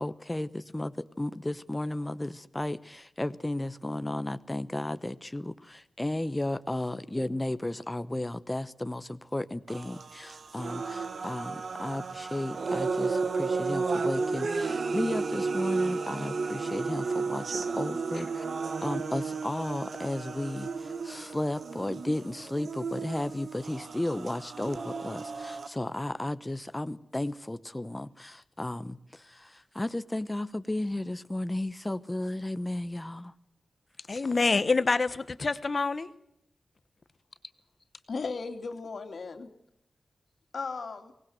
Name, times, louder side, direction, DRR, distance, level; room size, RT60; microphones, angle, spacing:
voice 1, 0.0-18.5 18.8-33.3, left 1 dB, 15° left, 13 dB, 0.9 m, -34 dB
sound 1, 9.7-25.7, right 4 dB, 70° right, 1.7 m, -33 dB
voice 2, 34.1-36.1, left 3 dB, 40° left, 13 dB, 1.2 m, -26 dB
voice 3, 38.1-39.5 40.5-41.1, left 4 dB, 65° left, 6 dB, 2.6 m, -36 dB
24.0 x 19.0 x 7.9 m, 0.78 s
wide cardioid pair, 125°, 0 cm